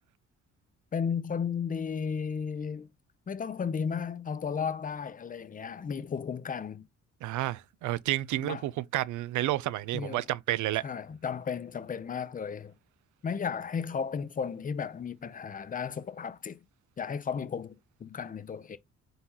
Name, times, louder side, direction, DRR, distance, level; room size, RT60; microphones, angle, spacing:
voice 1, 0.9-2.9 3.3-6.8 8.4-8.6 9.9-10.2 10.8-12.7 13.2-16.6 17.0-18.8, left 6 dB, 30° left, 0.5 m, -34 dB
voice 2, 7.2-10.8, right 15 dB, 75° right, 0.4 m, -30 dB
3.9 x 3.9 x 2.9 m
cardioid pair, 90°, 30 cm